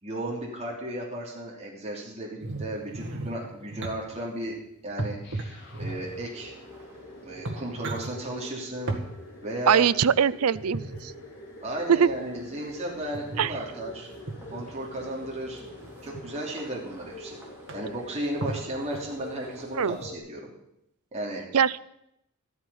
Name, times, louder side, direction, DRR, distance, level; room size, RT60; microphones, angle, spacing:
voice 1, 0.0-4.5 4.8-6.5 7.2-8.9 9.4-9.9 11.6-14.1 14.5-15.6 16.0-17.4 17.7-20.5 21.1-21.4, right 1 dB, 30° right, -3 dB, 3.0 m, -35 dB
sound 1, 2.4-4.0 5.0-6.3 6.9-7.0 7.3-8.1 8.9-9.1 10.5-11.0 13.1-13.6 14.3-14.6 15.7-16.2 17.0-17.1 17.3-17.4 17.7-18.0 18.4-19.3 20.0-20.1, right 2 dB, 60° right, 2.0 m, -35 dB
sound 2, 5.2-20.2, left 1 dB, 55° left, 3.0 m, -46 dB
sound 3, 5.5-20.0, right 1 dB, 10° right, 3.5 m, -53 dB
voice 2, 9.7-11.1 11.9-12.1 13.4-13.5 19.8-20.0 21.5-21.8, right 7 dB, 85° right, 19 dB, 0.5 m, -22 dB
14.0 x 12.5 x 5.6 m, 0.80 s
head